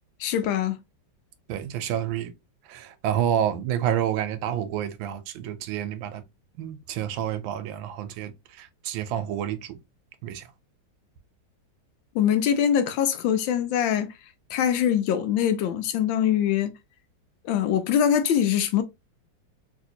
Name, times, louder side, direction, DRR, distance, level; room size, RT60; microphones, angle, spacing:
voice 1, 0.2-0.8 12.1-14.1 14.5-16.7 17.4-18.8, left 9 dB, 85° left, 1.4 m, -23 dB
voice 2, 1.5-2.3 2.7-6.2 6.6-9.8 10.2-10.4, right 10 dB, 90° right, 1.4 m, -29 dB
3.3 x 2.8 x 2.7 m
omnidirectional pair, 2.1 m